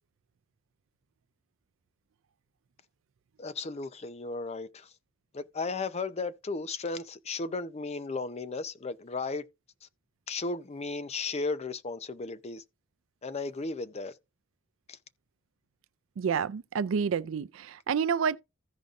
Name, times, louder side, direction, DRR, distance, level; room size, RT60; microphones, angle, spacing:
voice 1, 3.4-4.9 5.3-9.4 10.3-12.6 13.2-14.1 14.9-15.0, left 3 dB, 35° left, 0.6 m, -35 dB
voice 2, 16.2-18.4, right 6 dB, 85° right, 0.4 m, -29 dB
15.5 x 5.2 x 2.5 m
head